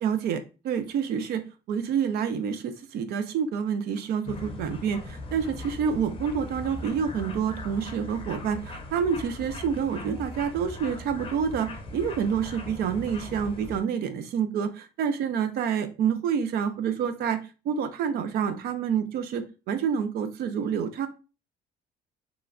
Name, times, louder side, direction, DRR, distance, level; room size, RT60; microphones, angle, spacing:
voice 1, 0.0-21.1, right 7 dB, 70° right, 10 dB, 0.5 m, -28 dB
sound 1, 4.2-13.8, left 2 dB, 35° left, 0.6 m, -39 dB
3.0 x 2.3 x 2.4 m, 0.32 s
cardioid pair, 110°, 17 cm